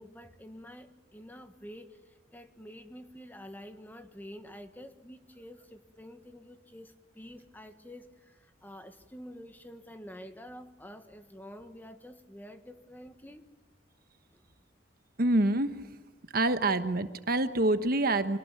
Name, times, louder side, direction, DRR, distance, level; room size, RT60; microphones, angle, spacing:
voice 1, 0.0-2.0 2.3-13.5, equal, 10° left, 8 dB, 1.5 m, -48 dB
voice 2, 15.2-15.8 16.3-18.4, right 2 dB, 50° right, 10 dB, 1.2 m, -26 dB
26.5 x 18.5 x 9.1 m, 1.2 s
head